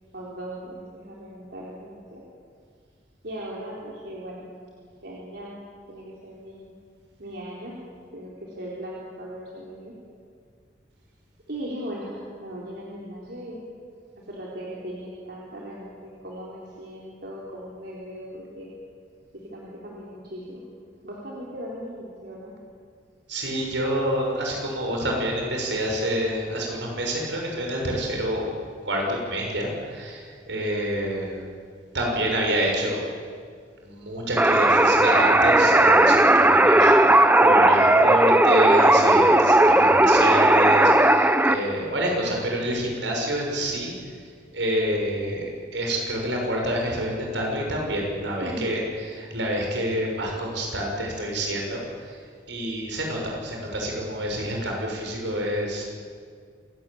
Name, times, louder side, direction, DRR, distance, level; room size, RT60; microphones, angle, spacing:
voice 1, 0.1-2.2 3.2-4.5 5.0-5.5 5.9-6.7 7.2-7.8 8.1-9.9 11.5-13.6 14.2-18.7 19.3-20.7 21.0-22.6 48.4-48.6, equal, 60° right, -5 dB, 4.2 m, -38 dB
voice 2, 23.3-28.5 28.8-31.4 31.9-33.0 33.8-43.9 44.5-48.8 49.1-51.8 52.5-55.8, right 1 dB, 80° right, 0 dB, 6.6 m, -27 dB
sound 1, 34.4-41.6, right 1 dB, 10° right, 0.9 m, -16 dB
27.5 x 18.0 x 8.8 m, 2.1 s
head